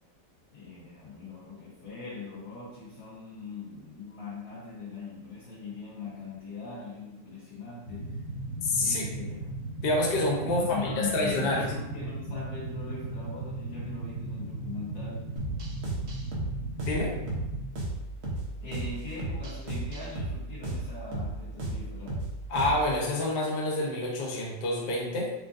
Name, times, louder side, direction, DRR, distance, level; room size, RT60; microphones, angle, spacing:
voice 1, 0.5-8.2 8.7-9.5 10.4-15.3 18.2-22.2, left 3 dB, 80° left, -9 dB, 1.7 m, -40 dB
sound 1, 7.8-17.6, right 2 dB, 25° right, 1.3 m, -37 dB
voice 2, 8.6-9.0 9.8-11.7 16.9-17.1 22.5-25.3, left 2 dB, 55° left, -2 dB, 0.6 m, -28 dB
sound 2, 15.4-23.0, right 1 dB, 55° right, 0.8 m, -34 dB
4.9 x 2.4 x 2.5 m, 0.96 s
omnidirectional pair, 2.0 m